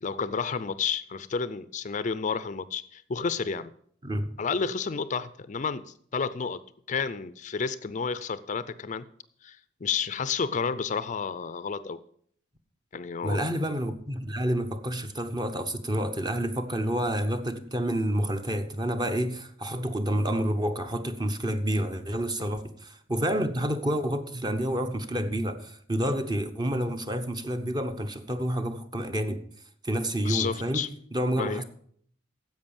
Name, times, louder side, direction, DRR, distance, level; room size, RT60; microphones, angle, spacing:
voice 1, 0.0-3.7 4.4-5.8 6.1-6.6 6.9-9.0 9.4-12.0 12.9-13.4 30.2-30.9 31.3-31.6, left 5 dB, 40° left, 0.4 m, -31 dB
voice 2, 4.0-4.3 13.2-29.4 29.8-30.9 31.1-31.6, equal, 20° right, 0.9 m, -29 dB
10.5 x 7.8 x 7.0 m
head